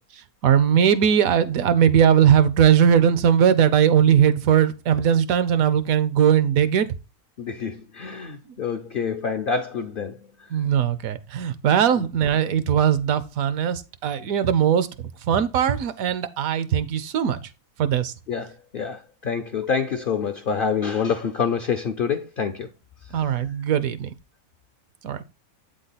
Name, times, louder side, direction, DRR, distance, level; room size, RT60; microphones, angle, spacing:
voice 1, 0.4-6.9 10.5-17.5 17.8-18.1 23.1-24.1 25.0-25.2, right 9 dB, 75° right, 1.1 m, -19 dB
voice 2, 7.4-10.3 18.3-22.7, left 6 dB, 60° left, 0.5 m, -27 dB
8.2 x 3.8 x 4.0 m
omnidirectional pair, 1.5 m